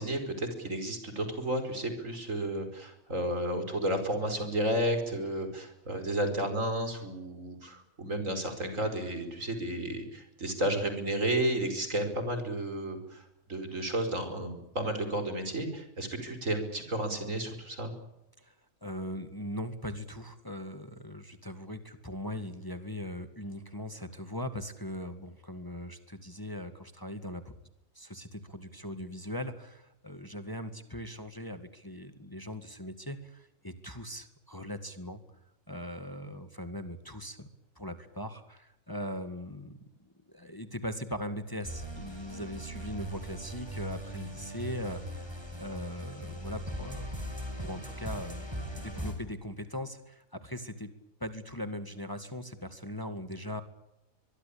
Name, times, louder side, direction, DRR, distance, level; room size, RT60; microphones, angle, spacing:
voice 1, 0.0-17.9, right 1 dB, 70° right, 8 dB, 5.4 m, -32 dB
voice 2, 18.8-27.5 28.0-35.2 35.7-37.5 37.8-45.3 45.6-47.1 47.6-50.9 51.2-53.6, equal, 15° left, 10 dB, 1.9 m, -40 dB
sound 1, 41.6-49.1, equal, 20° right, 5.4 m, -39 dB
24.0 x 22.0 x 8.6 m, 0.87 s
omnidirectional pair, 1.4 m